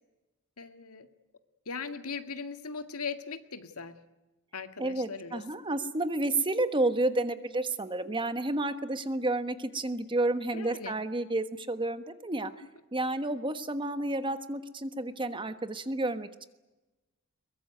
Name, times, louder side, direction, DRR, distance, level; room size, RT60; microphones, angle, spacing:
voice 1, 0.6-1.1 1.7-3.9 4.5-5.4 10.5-10.9, left 5 dB, 90° left, 8 dB, 2.0 m, -39 dB
voice 2, 4.8-12.5 12.9-16.5, right 2 dB, 25° right, 11 dB, 1.3 m, -30 dB
22.5 x 22.0 x 9.3 m, 1.1 s
head